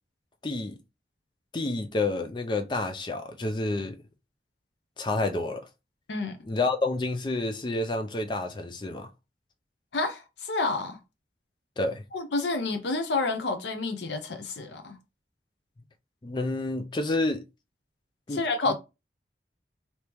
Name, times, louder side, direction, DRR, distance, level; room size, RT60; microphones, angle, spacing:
voice 1, 0.4-0.8 1.5-4.0 5.0-5.6 6.4-9.1 11.8-12.0 16.2-17.4 18.3-18.4 18.7-18.8, left 2 dB, 25° left, 0.4 m, -29 dB
voice 2, 9.9-11.0 12.1-15.0 18.3-18.7, left 3 dB, 80° left, 0.6 m, -29 dB
3.4 x 2.8 x 3.0 m
head